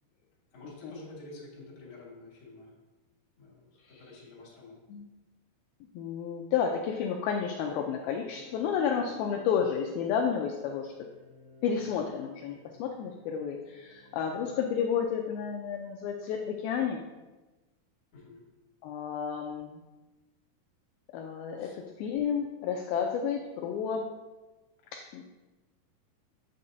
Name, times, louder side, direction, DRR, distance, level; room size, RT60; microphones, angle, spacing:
voice 1, 0.5-2.7 3.4-4.8 18.1-18.4 21.6-21.8, left 2 dB, 40° left, -5 dB, 2.4 m, -49 dB
voice 2, 5.9-10.9 11.6-17.0 18.8-19.8 21.1-24.1 24.9-25.2, left 7 dB, 85° left, 2 dB, 2.1 m, -31 dB
sound 1, 7.6-15.2, equal, 55° right, 1.5 m, -54 dB
8.5 x 7.5 x 2.7 m, 1.2 s
omnidirectional pair, 4.8 m